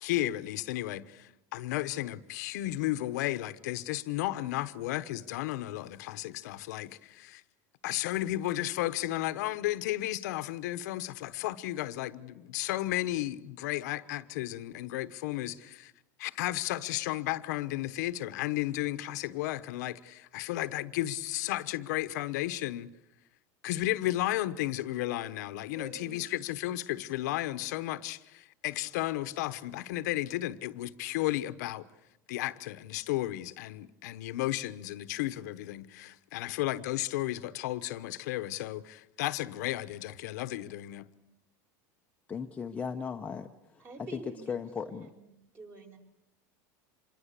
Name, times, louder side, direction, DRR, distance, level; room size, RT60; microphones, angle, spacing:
voice 1, 0.0-7.4 7.8-15.9 16.2-22.9 23.6-31.9 32.3-41.1, left 15 dB, 80° left, 1.1 m, -33 dB
voice 2, 25.7-26.3 43.8-44.5 44.8-45.3 45.5-46.0, right 2 dB, 25° right, 4.9 m, -47 dB
voice 3, 42.3-43.8 44.1-44.2 44.5-45.1, left 6 dB, 15° left, 0.9 m, -37 dB
26.0 x 22.0 x 8.4 m
supercardioid pair, 145°, 9 cm